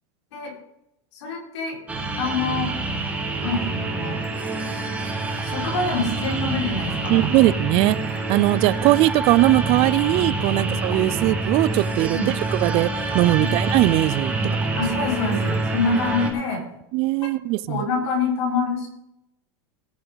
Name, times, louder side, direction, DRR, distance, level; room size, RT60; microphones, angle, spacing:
voice 1, 1.1-1.8 2.2-2.7 3.4-4.2 5.4-7.4 10.5-10.8 12.1-12.3 13.4-13.5 14.4-16.6 17.7-18.9, left 3 dB, 85° left, -1 dB, 5.1 m, -26 dB
sound 1, 1.9-16.3, right 3 dB, 10° right, 1.9 m, -26 dB
voice 2, 7.1-8.0 8.3-12.9 13.1-14.3 16.9-17.8, right 18 dB, 45° right, 20 dB, 0.5 m, -20 dB
18.0 x 7.8 x 4.1 m, 0.84 s
supercardioid pair, 150°, 14 cm